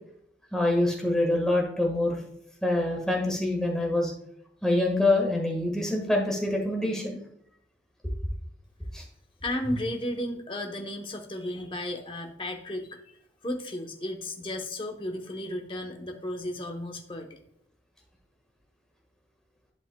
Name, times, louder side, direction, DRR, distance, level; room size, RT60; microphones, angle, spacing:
voice 1, 0.5-2.2 2.6-4.1 4.6-7.2 8.9-9.0, left 1 dB, 5° left, -1 dB, 1.5 m, -25 dB
voice 2, 9.4-13.0 13.4-17.4, left 1 dB, 30° left, 3 dB, 0.9 m, -34 dB
11.5 x 5.4 x 2.2 m, 0.71 s
head